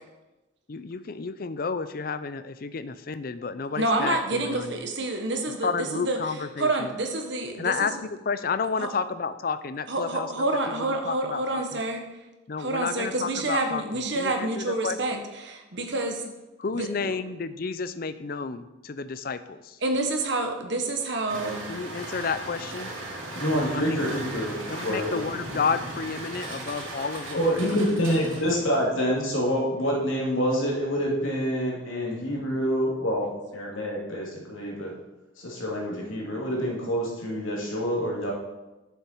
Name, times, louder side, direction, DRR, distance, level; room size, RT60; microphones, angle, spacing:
voice 1, 0.7-4.7 5.6-6.9 7.6-10.3 11.0-11.6 12.5-13.8 14.2-15.3 16.6-19.6 21.7-22.9 23.7-24.2 24.7-28.0 28.3-28.4, left 5 dB, 45° left, 12 dB, 0.5 m, -31 dB
voice 2, 3.7-8.0 8.8-8.9 9.9-12.0 12.6-16.2 16.7-17.1 19.8-21.6, right 2 dB, 60° right, 4 dB, 1.3 m, -28 dB
sound 1, 21.3-28.9, right 2 dB, 80° right, 2.6 m, -37 dB
voice 3, 23.3-25.1 27.3-34.9 35.4-38.3, equal, 85° left, -3 dB, 2.8 m, -27 dB
10.5 x 7.1 x 4.5 m, 1.0 s
head